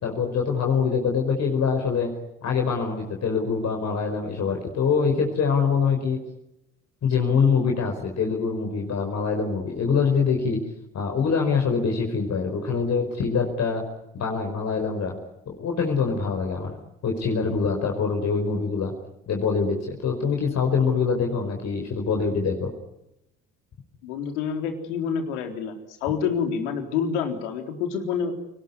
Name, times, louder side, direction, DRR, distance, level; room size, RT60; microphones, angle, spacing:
voice 1, 0.0-2.1 2.4-6.2 7.0-10.6 10.9-13.8 14.1-15.1 15.5-16.7 17.0-18.9 19.3-22.7, left 5 dB, 45° left, 2 dB, 5.0 m, -24 dB
voice 2, 24.0-28.3, left 6 dB, 70° left, 5 dB, 4.0 m, -27 dB
29.0 x 19.5 x 9.7 m, 0.87 s
figure-of-eight pair, 55°, 36 cm